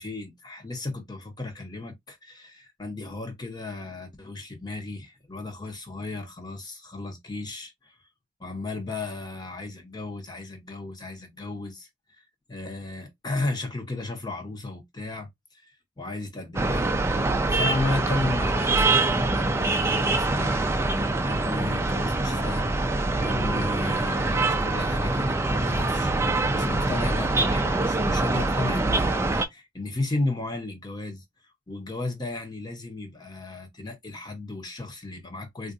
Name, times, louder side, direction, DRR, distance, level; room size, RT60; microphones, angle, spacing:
voice 1, 0.0-8.0 8.4-11.9 12.2-31.2 31.7-35.7, left 2 dB, 20° left, 0.8 m, -34 dB
sound 1, 16.6-29.5, right 2 dB, 15° right, 0.4 m, -24 dB
3.8 x 2.4 x 2.5 m
head